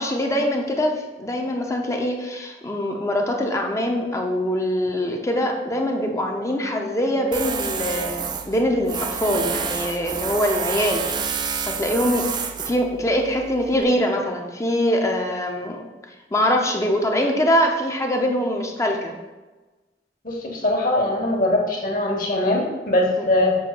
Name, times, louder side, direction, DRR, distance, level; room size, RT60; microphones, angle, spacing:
voice 1, 0.0-11.2 11.7-12.3 12.7-15.8 16.3-19.2, equal, 15° left, 2 dB, 0.6 m, -23 dB
Tools, 7.3-13.8, right 6 dB, 25° right, 0.3 m, -29 dB
voice 2, 20.2-23.6, left 1 dB, 50° left, -1 dB, 1.4 m, -21 dB
7.0 x 2.8 x 5.8 m, 1.2 s
head